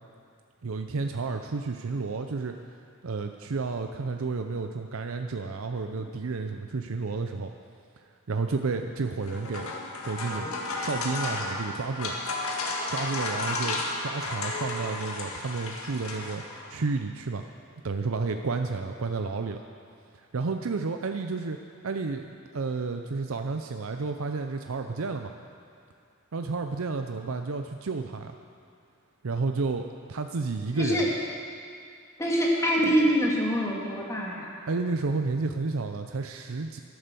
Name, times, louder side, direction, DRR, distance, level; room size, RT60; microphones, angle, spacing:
voice 1, 0.6-2.5 3.0-7.5 8.3-9.7 10.0-10.5 10.8-12.1 12.9-16.4 16.7-17.4 17.8-19.6 20.3-21.6 21.8-25.3 26.3-28.4 29.2-29.8 30.1-31.1 34.7-36.8, right 4 dB, 70° right, 5 dB, 0.6 m, -31 dB
sound 1, 9.1-16.8, left 2 dB, 85° left, 1.8 m, -33 dB
voice 2, 32.2-34.5, equal, 15° left, -3 dB, 2.2 m, -25 dB
12.5 x 11.0 x 6.9 m, 2.4 s
head